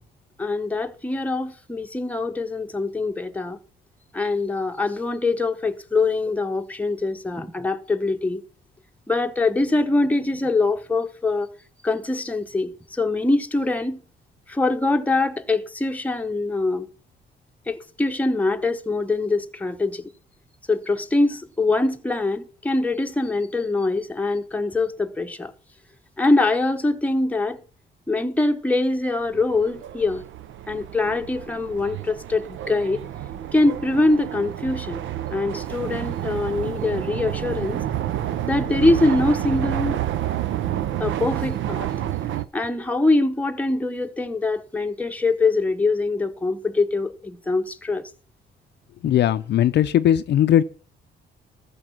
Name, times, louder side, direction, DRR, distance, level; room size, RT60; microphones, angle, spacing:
voice 1, 0.4-3.6 4.1-8.4 9.1-11.5 11.8-14.0 14.5-16.9 17.7-20.1 20.7-25.5 26.2-27.6 28.1-30.2 30.7-33.0 33.5-37.8 38.5-40.0 41.0-41.9 42.5-48.1, left 2 dB, 5° left, 1.0 m, -23 dB
sound 1, 29.2-42.4, right 12 dB, 75° right, 0.7 m, -29 dB
voice 2, 49.0-50.6, left 11 dB, 60° left, 0.5 m, -18 dB
14.0 x 6.4 x 5.9 m
cardioid pair, 90°, 20 cm